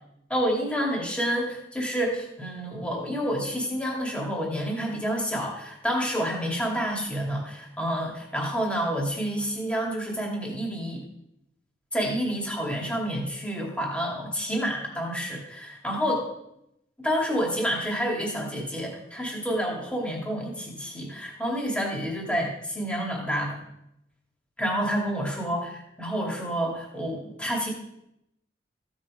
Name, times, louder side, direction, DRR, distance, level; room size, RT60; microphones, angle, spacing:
voice 1, 0.3-11.0 11.9-16.3 17.0-23.6 24.6-27.7, equal, 5° left, -1 dB, 2.4 m, -29 dB
15.0 x 6.4 x 4.9 m, 0.83 s
head